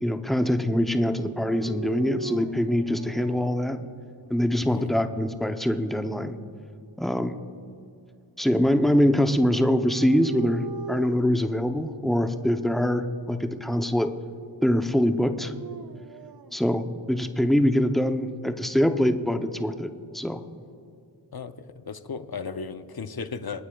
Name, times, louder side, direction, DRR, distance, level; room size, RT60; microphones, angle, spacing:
voice 1, 0.0-3.9 4.3-6.4 7.0-7.3 8.4-14.1 14.6-15.5 16.5-19.9 20.1-20.4, equal, ahead, 7 dB, 0.6 m, -24 dB
Dog, 1.4-3.6 4.2-5.0 9.1-11.4 12.2-12.7 15.2-16.5, right 4 dB, 55° right, 0.5 m, -39 dB
voice 2, 4.6-4.9 21.3-23.6, left 5 dB, 55° left, 11 dB, 0.6 m, -35 dB
26.5 x 9.5 x 2.3 m, 2.6 s
wide cardioid pair, 40°, 45 cm